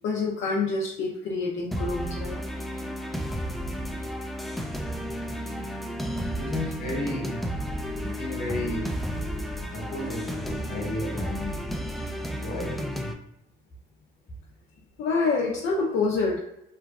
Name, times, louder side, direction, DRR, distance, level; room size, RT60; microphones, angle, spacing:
voice 1, 0.0-2.4 15.0-16.4, left 4 dB, 75° left, 0.5 m, -27 dB
sound 1, 1.7-13.1, equal, ahead, 0.3 m, -32 dB
voice 2, 6.3-7.5 8.0-9.1 9.7-11.7 12.4-12.9, left 1 dB, 50° left, 1.1 m, -33 dB
3.0 x 2.3 x 2.3 m
cardioid pair, 90°, 20 cm